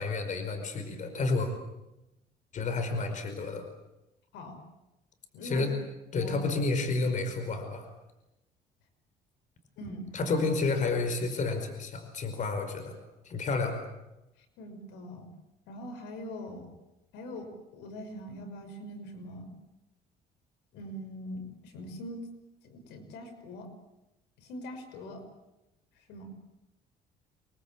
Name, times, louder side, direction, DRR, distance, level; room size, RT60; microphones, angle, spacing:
voice 1, 0.0-1.5 2.5-3.7 5.4-5.7 6.1-7.9 10.1-12.9 13.2-13.8, left 3 dB, 45° left, 7 dB, 5.0 m, -30 dB
voice 2, 5.3-5.7 6.1-6.4 9.8-10.5 14.6-15.3 15.7-16.7 17.1-19.5 20.7-22.2 22.6-23.7 24.4-25.2 26.1-26.3, equal, 85° left, 6 dB, 5.8 m, -42 dB
27.0 x 20.5 x 8.5 m, 0.94 s
cardioid pair, 110°, 17 cm